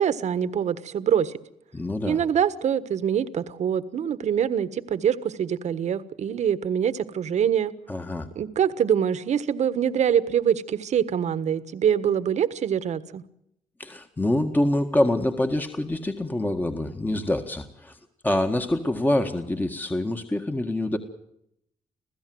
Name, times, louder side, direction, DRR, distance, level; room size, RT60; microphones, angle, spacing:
voice 1, 0.0-1.4 2.1-7.7 8.3-13.2, right 8 dB, 60° right, 14 dB, 1.5 m, -24 dB
voice 2, 1.7-2.2 7.9-8.3 13.8-18.0 18.2-21.0, left 1 dB, 15° left, 5 dB, 1.8 m, -25 dB
27.0 x 16.0 x 7.9 m, 0.77 s
cardioid pair, 95°, 13 cm